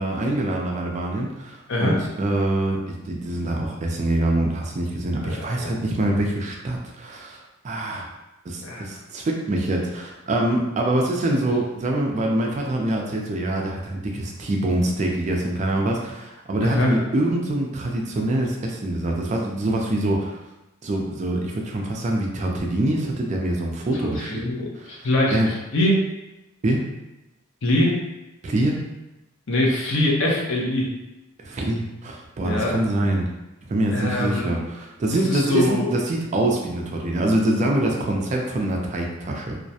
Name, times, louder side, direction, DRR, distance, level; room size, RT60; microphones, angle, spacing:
voice 1, 0.0-8.1 8.5-20.4 20.8-24.4 24.7-25.5 26.6-26.8 28.4-28.8 31.4-33.3 33.7-39.6, right 1 dB, 35° right, 0 dB, 0.3 m, -25 dB
voice 2, 5.2-5.7 8.6-8.8 16.6-16.9 24.2-25.4 25.7-26.1 27.6-27.9 29.5-30.9 32.4-32.8 33.9-34.6 35.3-35.9, left 1 dB, 65° left, -2 dB, 0.6 m, -23 dB
2.3 x 2.1 x 2.7 m, 0.98 s
head